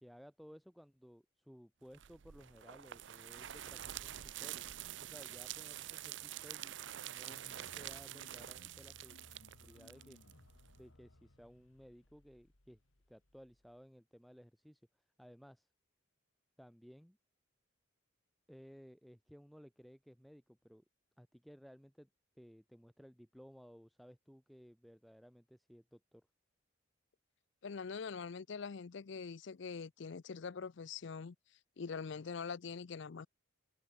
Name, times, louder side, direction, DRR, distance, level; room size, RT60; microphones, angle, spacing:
voice 1, 0.0-4.7 5.0-6.8 7.0-9.2 9.6-10.2 10.7-12.8 13.1-14.8 15.2-15.7 16.6-17.2 18.5-20.8 21.2-22.1 22.4-26.3, equal, ahead, 0.5 m, -58 dB
sound 1, 1.9-10.8, right 12 dB, 65° right, 0.6 m, -47 dB
sound 2, 7.2-13.8, left 1 dB, 85° left, 2.4 m, -63 dB
voice 2, 27.6-31.3 31.8-33.3, left 5 dB, 65° left, 0.5 m, -43 dB
head